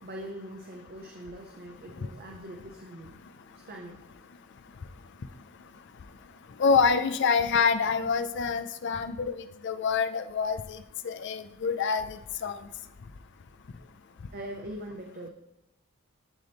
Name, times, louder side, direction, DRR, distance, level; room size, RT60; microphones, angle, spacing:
voice 1, 0.0-3.2 3.7-4.0 14.3-15.3, right 1 dB, 40° right, 1 dB, 0.6 m, -42 dB
voice 2, 6.6-9.3 9.6-12.2 12.4-12.6, left 5 dB, 50° left, 10 dB, 0.4 m, -26 dB
11.5 x 4.1 x 3.4 m, 0.90 s
head